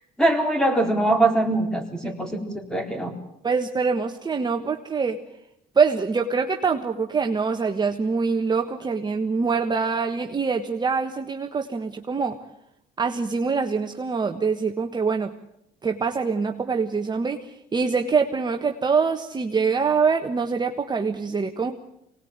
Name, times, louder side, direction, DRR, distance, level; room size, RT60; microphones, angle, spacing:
voice 1, 0.2-3.1, right 2 dB, 5° left, 4 dB, 4.0 m, -22 dB
voice 2, 3.4-5.2 5.7-12.4 13.0-15.3 15.8-21.7, right 5 dB, 25° right, 3 dB, 1.4 m, -24 dB
24.5 x 19.5 x 8.9 m, 0.82 s
cardioid pair, 110°, 17 cm